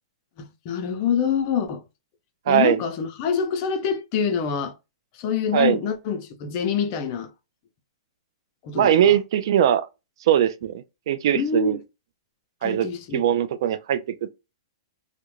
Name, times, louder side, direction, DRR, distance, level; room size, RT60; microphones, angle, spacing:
voice 1, 0.4-1.8 2.5-4.7 5.1-7.3 8.6-8.9 11.3-11.8 12.6-13.2, left 6 dB, 40° left, 0.5 m, -26 dB
voice 2, 2.5-2.8 5.5-5.8 8.7-9.9 10.2-11.8 12.6-14.3, right 10 dB, 60° right, 0.3 m, -21 dB
2.4 x 2.1 x 3.0 m
hypercardioid pair, 140°, 3 cm